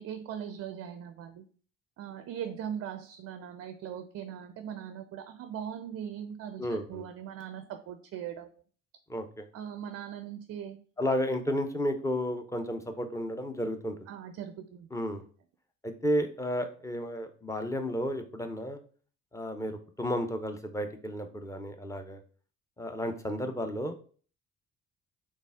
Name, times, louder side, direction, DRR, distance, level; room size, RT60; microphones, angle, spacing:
voice 1, 0.0-1.4 2.0-8.5 9.5-10.8 14.1-14.9, right 9 dB, 40° right, 9 dB, 0.5 m, -40 dB
voice 2, 6.6-7.1 9.1-9.4 11.0-14.1 14.9-15.2 15.8-18.8 19.3-22.2 22.8-23.9, equal, 10° left, 6 dB, 0.7 m, -32 dB
4.0 x 3.4 x 3.5 m, 0.43 s
figure-of-eight pair, 50°, 38 cm